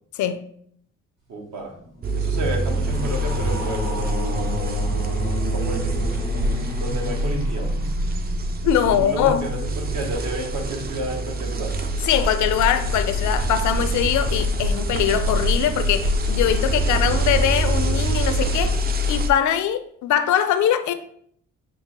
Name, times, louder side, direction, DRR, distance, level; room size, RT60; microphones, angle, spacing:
voice 1, 1.3-1.7 2.1-4.9 5.5-7.7 8.6-11.7, right 1 dB, 70° right, 1.0 m, -31 dB
sound 1, 1.6-9.0, left 1 dB, 85° right, 1.7 m, -33 dB
sound 2, 2.0-19.3, right 1 dB, 30° right, 0.4 m, -24 dB
voice 2, 8.6-9.5 12.0-20.9, left 10 dB, 75° left, 0.5 m, -22 dB
6.0 x 2.1 x 2.9 m
cardioid pair, 90°, 30 cm